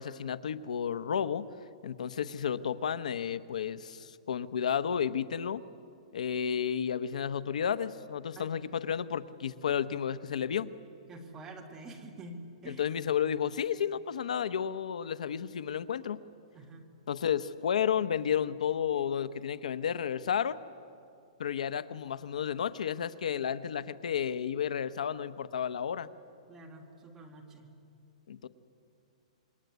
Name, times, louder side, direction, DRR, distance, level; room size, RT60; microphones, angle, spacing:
voice 1, 0.0-1.5 1.8-5.6 6.1-10.7 12.8-16.2 17.1-20.6 21.4-26.1 28.3-28.5, left 8 dB, 85° left, 14 dB, 1.0 m, -32 dB
voice 2, 8.4-8.8 11.1-12.9 16.5-16.8 26.5-27.7, right 2 dB, 10° right, 1 dB, 2.0 m, -47 dB
27.5 x 22.5 x 9.5 m, 2.5 s
hypercardioid pair, 180°, 4 cm